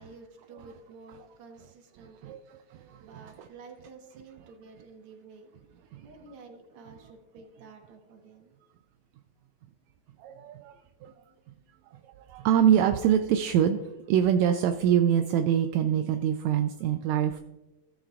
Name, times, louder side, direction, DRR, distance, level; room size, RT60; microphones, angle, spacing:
voice 1, 0.0-2.7 3.0-8.5, right 4 dB, 55° right, 2 dB, 2.0 m, -51 dB
voice 2, 2.2-3.5 5.9-6.1 10.2-11.1 11.8-17.4, right 9 dB, 80° right, 7 dB, 1.8 m, -25 dB
16.5 x 7.4 x 2.4 m, 1.1 s
omnidirectional pair, 3.3 m